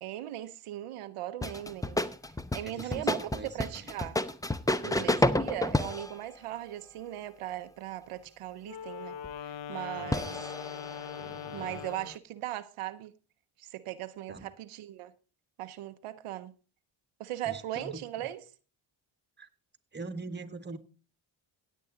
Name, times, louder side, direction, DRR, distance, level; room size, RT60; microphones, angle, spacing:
voice 1, 0.0-2.0 2.5-3.3 3.5-4.2 4.8-10.4 11.5-13.1 13.6-15.1 15.6-16.5 17.2-18.4, right 13 dB, 80° right, 0.7 m, -38 dB
sound 1, 1.4-6.2 9.2-9.3 10.1-12.1, left 1 dB, 5° left, 0.7 m, -30 dB
voice 2, 2.6-3.9 4.8-5.3 9.9-10.4 11.2-11.8 14.3-14.5 17.4-18.3 19.4-19.5 19.9-20.8, right 3 dB, 20° right, 1.5 m, -44 dB
Wind instrument woodwind instrument, 8.6-12.2, left 8 dB, 70° left, 0.8 m, -41 dB
17.0 x 8.3 x 3.8 m
cardioid pair, 60°, 50 cm